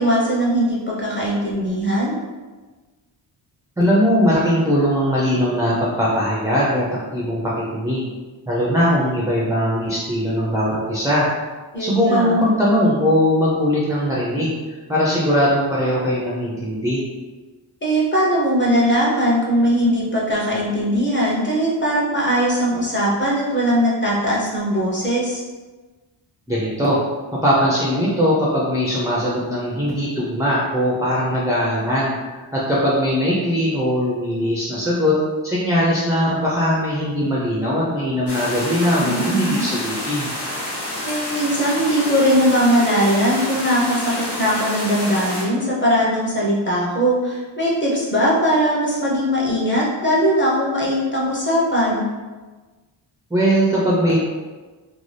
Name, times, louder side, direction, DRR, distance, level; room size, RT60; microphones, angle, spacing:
voice 1, 0.0-2.1 11.7-12.3 17.8-25.4 39.0-39.7 41.0-52.0, equal, 25° left, -5 dB, 0.6 m, -20 dB
voice 2, 3.8-6.9 7.1-8.1 8.5-11.3 11.8-17.0 26.5-27.0 27.4-35.2 35.4-40.3 53.3-54.2, equal, 10° right, -6 dB, 0.3 m, -20 dB
sound 1, 38.3-45.4, left 1 dB, 60° left, 1.0 m, -28 dB
2.6 x 2.2 x 3.2 m, 1.3 s
wide cardioid pair, 150°, 46 cm